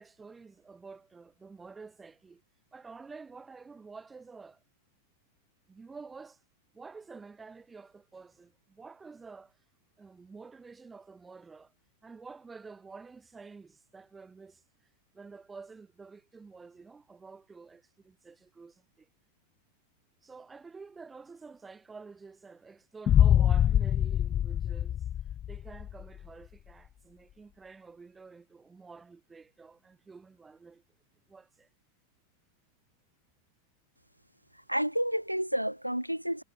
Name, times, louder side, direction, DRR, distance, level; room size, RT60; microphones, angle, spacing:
voice 1, 0.0-2.4 2.7-4.6 5.7-6.4 6.7-9.6 10.0-11.7 12.0-14.6 15.1-19.1 20.2-25.0 25.5-30.8 31.3-31.7, right 4 dB, 15° right, 4.2 m, -49 dB
sound 1, 23.1-26.0, left 10 dB, 30° left, 0.6 m, -24 dB
voice 2, 34.5-36.4, equal, 90° right, 3.6 m, -30 dB
figure-of-eight pair, 90°, 0 cm